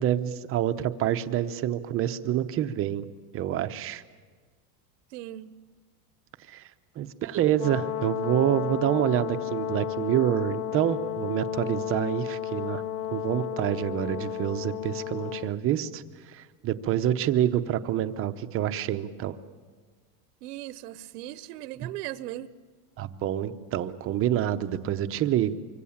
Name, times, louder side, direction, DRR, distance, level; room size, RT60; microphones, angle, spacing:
voice 1, 0.0-3.1 3.3-4.0 6.5-6.7 7.0-12.8 13.1-16.0 16.3-19.3 21.8-21.9 23.0-25.5, right 11 dB, 30° right, 9 dB, 0.8 m, -27 dB
voice 2, 5.1-5.6 20.4-22.5, right 14 dB, 75° right, 14 dB, 1.0 m, -38 dB
Brass instrument, 7.5-15.5, left 11 dB, 80° left, 1.0 m, -33 dB
25.5 x 24.5 x 7.3 m, 1.5 s
supercardioid pair, 160°, 48 cm